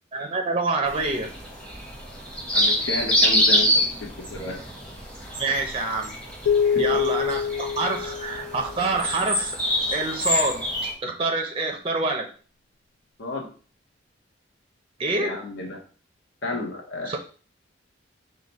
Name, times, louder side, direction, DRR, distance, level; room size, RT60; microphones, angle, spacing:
voice 1, 0.1-1.3 5.4-6.1 6.8-9.6 9.9-12.3 15.0-15.4 17.1-17.2, right 3 dB, 30° right, 3 dB, 0.4 m, -26 dB
sound 1, 0.9-10.9, equal, 5° left, 0.8 m, -26 dB
voice 2, 2.5-4.6 13.2-13.5 15.1-15.8 16.4-17.2, left 2 dB, 70° left, 1 dB, 0.8 m, -32 dB
sound 2, 6.5-9.0, left 7 dB, 90° left, 0.4 m, -25 dB
4.7 x 2.1 x 4.1 m, 0.39 s
head